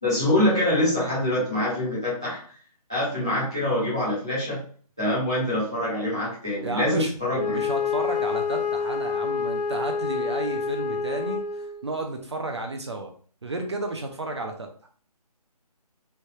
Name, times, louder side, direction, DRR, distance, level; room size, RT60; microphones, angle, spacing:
voice 1, 0.0-2.4 2.9-4.6 5.0-7.6, left 1 dB, 5° left, -13 dB, 0.4 m, -25 dB
voice 2, 6.6-11.4 11.8-13.1 13.4-14.7, right 2 dB, 45° right, 3 dB, 0.5 m, -32 dB
Wind instrument woodwind instrument, 7.3-11.9, left 5 dB, 85° left, 0.5 m, -28 dB
3.2 x 2.1 x 2.7 m, 0.44 s
hypercardioid pair, 170°, 20 cm